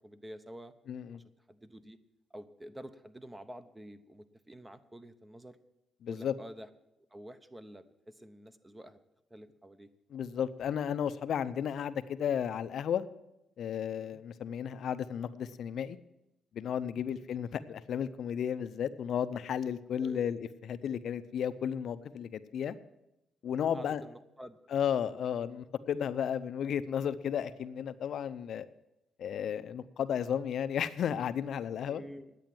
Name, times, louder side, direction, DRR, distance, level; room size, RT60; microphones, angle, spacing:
voice 1, 0.0-0.7 1.1-2.0 2.3-5.6 6.1-6.7 7.1-9.0 9.3-9.9 13.9-14.2 20.0-20.3 23.7-24.6 25.9-26.1 31.9-32.3, right 1 dB, 15° right, 11 dB, 0.9 m, -49 dB
voice 2, 0.9-1.2 6.0-6.3 10.1-13.0 13.6-16.0 16.5-22.7 23.4-24.0 24.7-28.7 29.2-32.0, left 8 dB, 65° left, 12 dB, 0.6 m, -33 dB
10.5 x 8.4 x 7.7 m, 0.91 s
cardioid pair, 90°, 0 cm